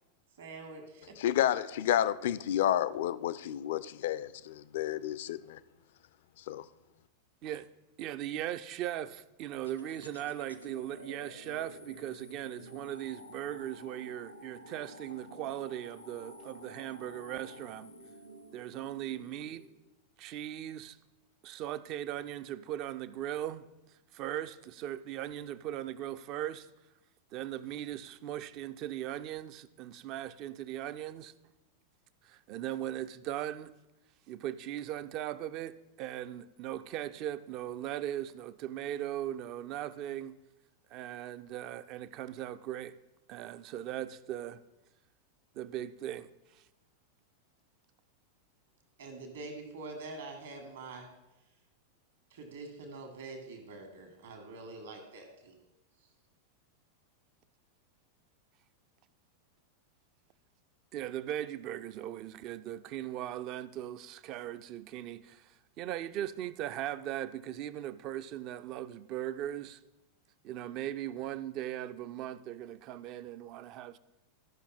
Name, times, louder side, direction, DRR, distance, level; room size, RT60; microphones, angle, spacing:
voice 1, 0.4-1.2 49.0-51.1 52.3-55.6, right 3 dB, 60° right, 1.7 m, -45 dB
voice 2, 1.2-5.6 6.5-6.6, left 11 dB, 55° left, 0.4 m, -30 dB
voice 3, 8.0-17.9 18.5-19.6 20.2-21.0 21.4-26.7 27.3-31.3 32.2-33.7 34.3-40.4 40.9-43.0 43.3-44.6 45.5-46.6 60.9-69.8 70.4-74.0, right 12 dB, 40° right, 0.4 m, -39 dB
sound 1, 9.6-19.7, equal, 90° left, 0.9 m, -51 dB
13.5 x 5.7 x 4.2 m
figure-of-eight pair, 90°, 0 cm